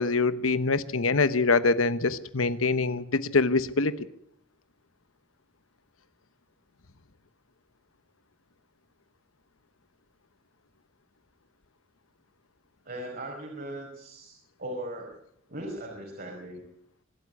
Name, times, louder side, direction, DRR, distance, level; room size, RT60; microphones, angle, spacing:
voice 1, 0.0-3.9, left 3 dB, 80° left, 13 dB, 1.1 m, -24 dB
voice 2, 12.8-15.2 15.5-16.6, right 1 dB, 45° right, -1 dB, 4.8 m, -38 dB
25.0 x 12.5 x 9.7 m, 0.73 s
head